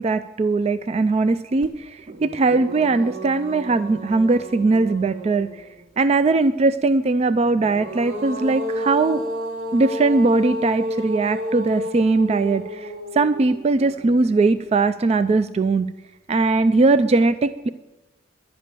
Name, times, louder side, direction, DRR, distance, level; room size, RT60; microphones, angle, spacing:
voice 1, 0.0-5.5 6.0-9.2 9.7-15.9 16.3-17.7, right 3 dB, 30° right, 12 dB, 0.3 m, -20 dB
sound 1, 1.6-1.7 2.1-5.8 7.4-14.7, equal, 80° right, 2.7 m, -32 dB
11.0 x 8.8 x 6.8 m, 1.0 s
head